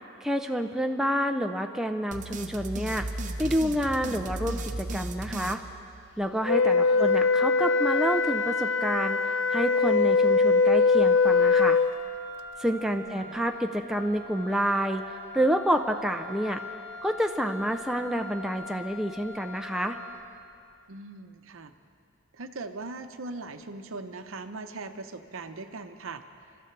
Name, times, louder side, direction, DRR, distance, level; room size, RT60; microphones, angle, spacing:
voice 1, 0.2-3.1 3.4-5.6 6.2-9.2 9.5-11.8 12.6-15.1 15.3-16.6 17.0-20.0, equal, ahead, 4 dB, 0.4 m, -28 dB
sound 1, 2.1-6.4, right 2 dB, 35° right, 0.7 m, -36 dB
Wind instrument woodwind instrument, 6.5-11.9, left 4 dB, 55° left, 0.4 m, -22 dB
Wind instrument woodwind instrument 2, 11.6-20.3, left 2 dB, 85° left, 5.0 m, -43 dB
voice 2, 13.0-13.4 20.9-21.7 22.3-26.2, right 3 dB, 70° right, 8 dB, 0.7 m, -40 dB
29.5 x 13.0 x 3.3 m, 2.4 s
head